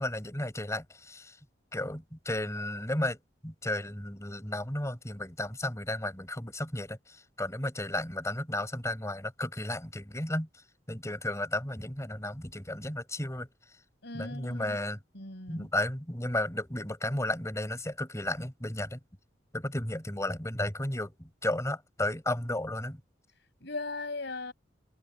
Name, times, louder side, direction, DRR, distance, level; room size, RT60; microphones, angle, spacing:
voice 1, 0.0-1.3 1.7-3.2 3.4-10.5 10.9-13.5 14.1-15.0 15.5-19.0 19.5-23.0, left 1 dB, 15° left, 4.5 m, -33 dB
voice 2, 14.0-14.8 15.1-15.7 23.6-24.5, left 3 dB, 65° left, 5.7 m, -38 dB
head